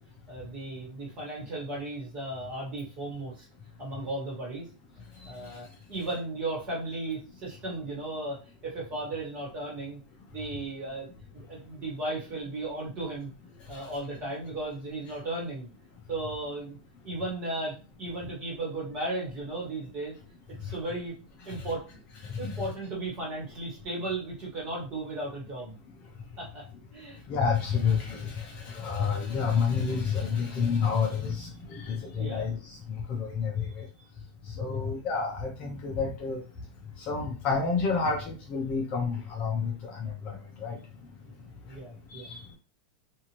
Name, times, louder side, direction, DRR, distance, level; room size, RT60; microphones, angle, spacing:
voice 1, 0.3-3.4 3.8-4.7 5.2-8.4 8.6-10.0 10.3-11.1 11.3-13.3 13.7-15.7 16.1-16.8 17.0-20.1 20.6-21.1 21.4-21.8 22.4-25.8 26.4-26.6 26.9-27.2 32.1-32.5 34.6-34.8 41.2-42.3, right 2 dB, 25° right, -3 dB, 1.4 m, -35 dB
voice 2, 22.2-22.7 27.3-33.9 34.6-36.4 37.1-40.8 42.1-42.4, left 5 dB, 30° left, 0 dB, 0.5 m, -29 dB
2.7 x 2.5 x 3.0 m, 0.35 s
supercardioid pair, 170°, 4 cm